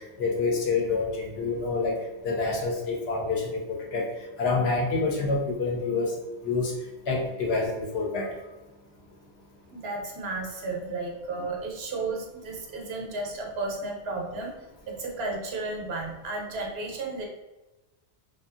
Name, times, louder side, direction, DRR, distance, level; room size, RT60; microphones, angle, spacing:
voice 1, 0.2-2.0 2.2-4.1 4.4-6.1 6.4-6.7 7.1-8.3, left 3 dB, 70° left, -1 dB, 0.8 m, -27 dB
voice 2, 9.7-14.6 14.9-17.3, right 3 dB, 70° right, 0 dB, 0.8 m, -33 dB
2.6 x 2.3 x 2.4 m, 1.1 s
omnidirectional pair, 1.1 m